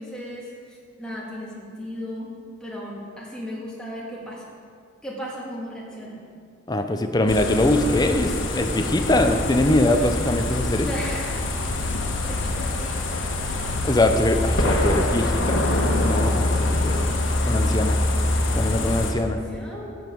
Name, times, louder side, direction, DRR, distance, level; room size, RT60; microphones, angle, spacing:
voice 1, 0.0-2.3 2.6-4.5 5.0-6.2 10.8-11.5 11.8-11.9 12.2-13.0 16.2-17.1 18.6-20.0, equal, 5° left, -5 dB, 2.0 m, -36 dB
voice 2, 6.7-10.9 13.8-15.6 16.0-16.3 16.6-17.1 17.4-18.0 18.6-19.4, left 1 dB, 20° left, 6 dB, 0.6 m, -22 dB
sound 1, 7.3-19.1, left 1 dB, 75° left, 1.3 m, -24 dB
12.5 x 8.2 x 4.6 m, 2.1 s
head